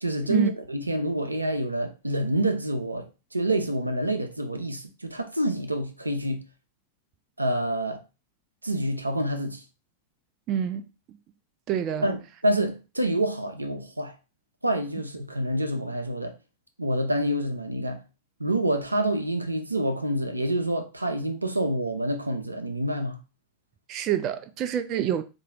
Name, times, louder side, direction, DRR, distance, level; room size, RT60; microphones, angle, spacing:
voice 1, 0.0-6.4 7.4-8.0 8.6-9.6 12.0-14.2 14.6-16.4 16.8-18.0 18.4-23.2, right 1 dB, 85° right, 0.5 m, -27 dB
voice 2, 10.5-11.2 11.7-12.1 23.9-25.2, right 9 dB, 35° right, 0.4 m, -27 dB
3.7 x 2.6 x 4.2 m
figure-of-eight pair, 90°, 0 cm